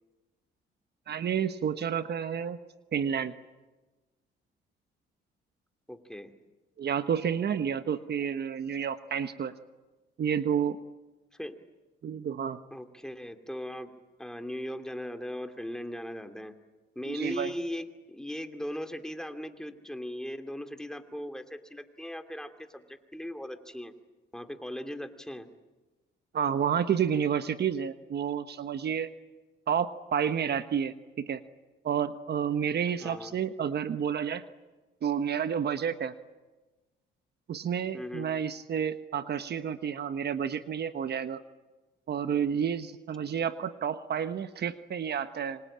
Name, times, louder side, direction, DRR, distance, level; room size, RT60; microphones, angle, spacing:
voice 1, 1.1-2.6 2.9-3.3 6.8-9.5 10.2-10.8 12.0-12.6 17.1-17.5 26.3-29.1 29.7-31.4 31.8-34.4 35.0-36.1 37.5-41.4 42.1-45.6, right 8 dB, 55° right, 10 dB, 1.2 m, -30 dB
voice 2, 5.9-6.3 11.4-11.5 12.7-13.9 14.2-16.6 17.0-23.9 24.3-25.5 33.0-33.4 37.9-38.3, equal, 5° left, 7 dB, 2.6 m, -38 dB
27.0 x 25.5 x 8.8 m, 1.2 s
cardioid pair, 90°, 20 cm